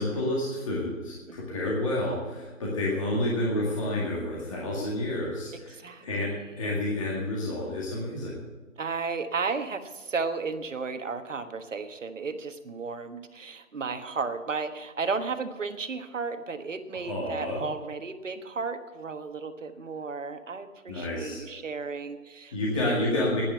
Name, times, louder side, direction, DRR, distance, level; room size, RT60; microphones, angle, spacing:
voice 1, 0.0-5.8 6.0-8.3 17.1-17.6 20.9-21.4 22.5-23.4, left 1 dB, 25° left, -4 dB, 2.0 m, -29 dB
voice 2, 1.3-1.7 5.7-6.0 8.8-23.2, right 4 dB, 65° right, 8 dB, 1.3 m, -34 dB
10.5 x 9.9 x 8.0 m, 1.3 s
hypercardioid pair, 170°, 41 cm